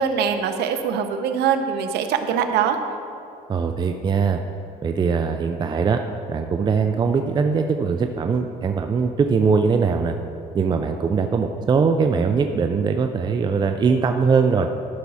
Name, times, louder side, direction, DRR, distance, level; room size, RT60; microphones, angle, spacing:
voice 1, 0.0-2.8 6.9-7.1, right 7 dB, 80° right, 7 dB, 0.8 m, -23 dB
voice 2, 3.5-4.4 4.8-6.0 6.3-10.1 10.5-14.7, right 5 dB, 25° right, 6 dB, 0.4 m, -21 dB
11.5 x 5.9 x 4.1 m, 2.5 s
cardioid pair, 110°, 17 cm